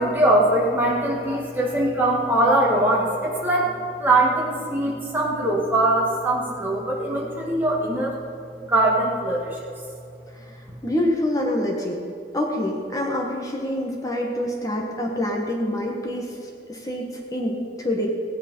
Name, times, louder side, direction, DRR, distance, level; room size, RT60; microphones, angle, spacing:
voice 1, 0.0-8.2 8.6-9.7, right 1 dB, 10° right, -3 dB, 1.9 m, -22 dB
voice 2, 10.8-12.0 12.3-16.3 16.7-18.1, left 1 dB, 20° left, 0 dB, 1.5 m, -26 dB
16.0 x 9.2 x 5.5 m, 2.5 s
head